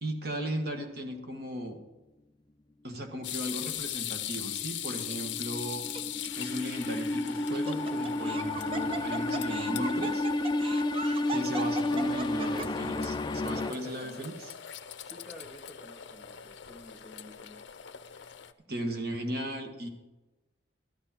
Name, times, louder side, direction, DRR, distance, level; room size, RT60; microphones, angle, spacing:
voice 1, 0.0-1.8 2.8-5.8 6.4-10.3 11.3-14.5 18.7-19.9, right 1 dB, 55° right, 4 dB, 1.6 m, -36 dB
sound 1, 3.2-18.5, left 10 dB, 85° left, 0.6 m, -41 dB
sound 2, 4.5-13.7, left 2 dB, 25° left, 0.4 m, -31 dB
Laughter, 4.9-5.3 5.9-6.0 7.3-12.9, right 3 dB, 30° right, 0.7 m, -39 dB
voice 2, 13.5-14.3 15.0-17.6, equal, ahead, 2 dB, 1.2 m, -50 dB
13.5 x 11.5 x 4.4 m, 1.1 s
head